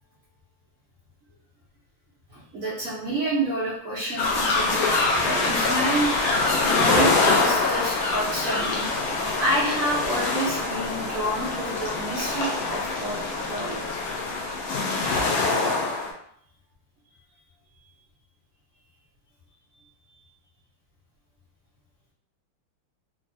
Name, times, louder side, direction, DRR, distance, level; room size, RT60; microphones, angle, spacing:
voice 1, 2.3-6.3 6.6-8.9 9.4-13.2 13.5-13.8, right 1 dB, 65° right, -8 dB, 0.8 m, -29 dB
sound 1, 4.2-16.1, left 3 dB, 75° left, 0.8 m, -24 dB
3.6 x 2.1 x 2.6 m, 0.66 s
omnidirectional pair, 2.3 m